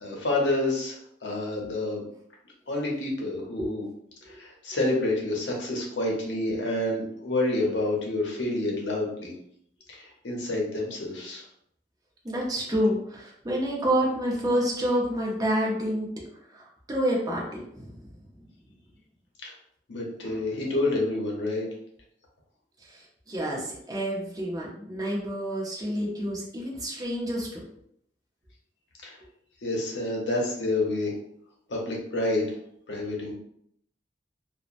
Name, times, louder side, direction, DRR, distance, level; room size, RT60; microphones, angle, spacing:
voice 1, 0.0-1.0 1.2-2.0 2.7-3.9 4.4-9.3 9.9-11.4 19.4-19.5 19.9-21.7 29.0-29.2 29.6-31.1 31.7-32.5 32.9-33.3, left 2 dB, 80° left, -1 dB, 0.7 m, -28 dB
voice 2, 12.2-16.1 16.5-18.0 20.2-20.4 23.3-27.6, equal, 20° right, -3 dB, 0.6 m, -28 dB
2.8 x 2.1 x 2.4 m, 0.71 s
head